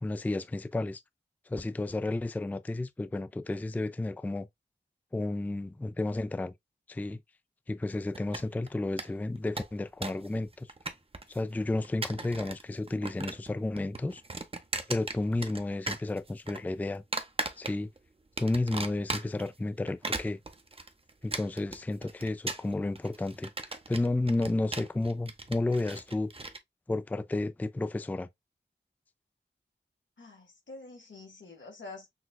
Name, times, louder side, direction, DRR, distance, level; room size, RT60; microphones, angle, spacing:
voice 1, 0.0-1.0 1.5-4.5 5.1-6.5 6.9-7.2 7.7-10.7 11.3-14.2 14.9-17.0 17.6-17.9 18.4-20.4 21.2-26.3 26.9-28.3, left 2 dB, 10° left, 0.3 m, -32 dB
sound 1, 8.1-8.7 9.0-9.1 9.4-10.3 10.5-11.4 11.8-12.6 12.9-13.5 13.8-15.6 15.9-16.6 17.1-18.0 18.4-19.5 19.9-26.6, right 2 dB, 30° right, 0.7 m, -37 dB
voice 2, 30.2-32.1, left 3 dB, 90° left, 1.6 m, -47 dB
6.0 x 2.3 x 2.3 m
cardioid pair, 45°, 19 cm